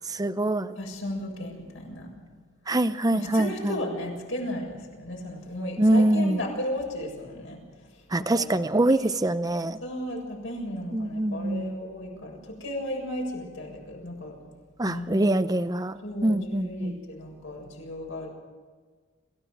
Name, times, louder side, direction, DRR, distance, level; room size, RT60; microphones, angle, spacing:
voice 1, 0.1-0.7 2.7-3.7 5.8-6.4 8.1-9.8 10.9-11.7 14.8-15.9 16.2-17.0, right 1 dB, 20° right, 11 dB, 0.6 m, -24 dB
voice 2, 0.8-2.1 3.1-7.6 7.9-8.5 9.0-9.1 9.5-14.4 14.8-15.3 16.0-18.3, left 1 dB, 70° left, 0 dB, 7.2 m, -35 dB
27.0 x 15.5 x 7.9 m, 1.5 s
head